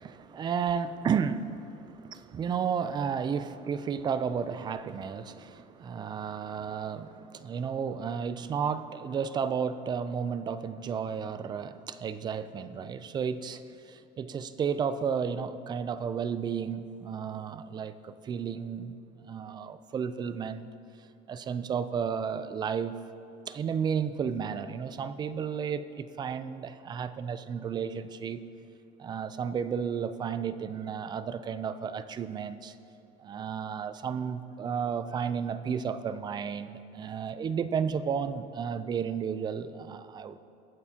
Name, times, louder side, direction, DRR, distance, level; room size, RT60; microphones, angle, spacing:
voice 1, 0.0-20.7 21.3-23.0 23.5-28.4 29.0-32.7 33.2-40.4, right 7 dB, 25° right, 13 dB, 0.4 m, -33 dB
22.5 x 9.3 x 2.8 m, 2.7 s
cardioid pair, 155°, 18 cm